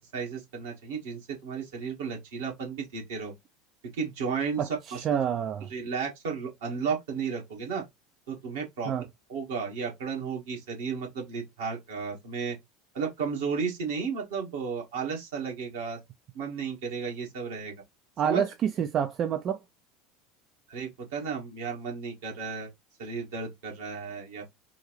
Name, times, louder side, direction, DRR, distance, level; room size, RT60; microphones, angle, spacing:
voice 1, 0.0-3.3 3.9-4.6 4.9-5.2 5.7-7.8 8.3-8.9 9.3-12.6 12.9-16.0 16.3-17.7 18.2-18.4 20.7-22.7 23.0-24.4, right 5 dB, 65° right, 1.6 m, -33 dB
voice 2, 4.6-5.7 8.9-9.0 18.2-19.6, right 8 dB, 40° right, 0.3 m, -28 dB
3.7 x 2.6 x 3.0 m
figure-of-eight pair, 75°, 0 cm